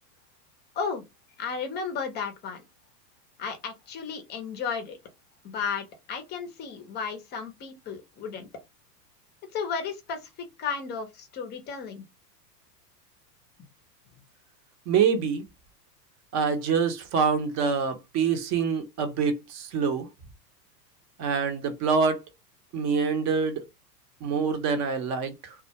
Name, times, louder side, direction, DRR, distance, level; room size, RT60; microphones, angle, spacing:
voice 1, 1.4-2.6 3.4-5.0 5.4-8.5 9.5-12.0, left 6 dB, 20° left, 0.5 m, -34 dB
voice 2, 14.9-15.4 16.3-20.1 21.2-22.2 22.7-23.6 24.2-25.5, right 6 dB, 35° right, 0.7 m, -25 dB
2.2 x 2.0 x 2.7 m
hypercardioid pair, 115°, 49 cm